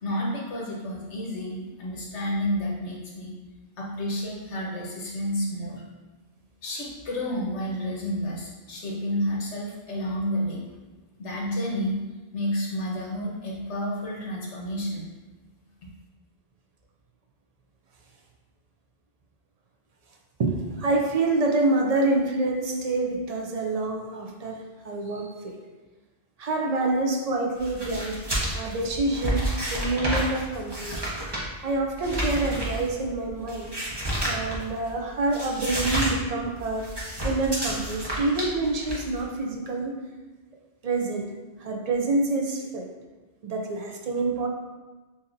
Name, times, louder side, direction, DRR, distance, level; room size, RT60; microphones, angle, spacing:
voice 1, 0.0-3.3 3.8-5.8 6.6-10.7 11.2-12.0 12.3-15.0, equal, 80° left, -3 dB, 1.3 m, -30 dB
voice 2, 20.4-25.6 26.4-28.2 28.5-29.5 29.7-31.1 31.6-33.8 34.3-36.9 37.2-40.0 40.8-41.3 41.6-42.9 43.4-44.5, right 2 dB, 55° right, 1 dB, 0.4 m, -27 dB
sound 1, 27.6-34.9 35.2-36.2 36.4-39.2, equal, 25° right, 0.8 m, -30 dB
6.7 x 2.7 x 2.5 m, 1.2 s
omnidirectional pair, 1.2 m